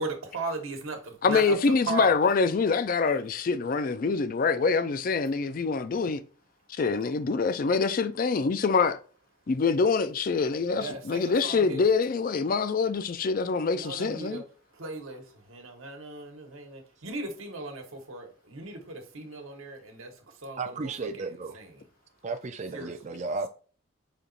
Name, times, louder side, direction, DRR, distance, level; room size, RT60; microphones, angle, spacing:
voice 1, 0.0-1.5 1.9-2.1 10.8-11.8 13.7-14.4 14.8-15.2 15.5-20.1 20.4-20.6 21.5-21.7 22.7-22.9, right 3 dB, 80° right, 1.2 m, -37 dB
voice 2, 1.2-6.2 6.7-9.0 9.5-14.4, left 4 dB, 40° left, 0.3 m, -25 dB
voice 3, 20.6-21.6 22.2-23.5, right 3 dB, 35° right, 0.4 m, -34 dB
5.1 x 2.9 x 2.6 m
head